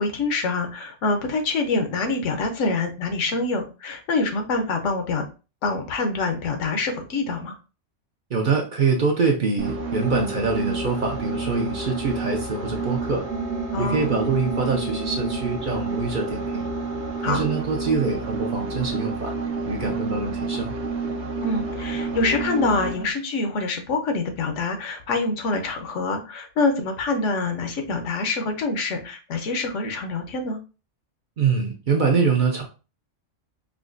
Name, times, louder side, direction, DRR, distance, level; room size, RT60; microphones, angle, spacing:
voice 1, 0.0-5.2 5.6-7.6 13.7-14.1 17.2-17.5 21.4-30.6, left 3 dB, 80° left, 5 dB, 1.1 m, -25 dB
voice 2, 8.3-13.2 13.8-16.7 17.3-19.3 19.7-20.8 31.4-32.6, right 4 dB, 55° right, 1 dB, 0.6 m, -24 dB
sound 1, 9.6-23.1, right 3 dB, 70° right, 1.0 m, -29 dB
4.8 x 2.2 x 2.5 m, 0.32 s
omnidirectional pair, 1.3 m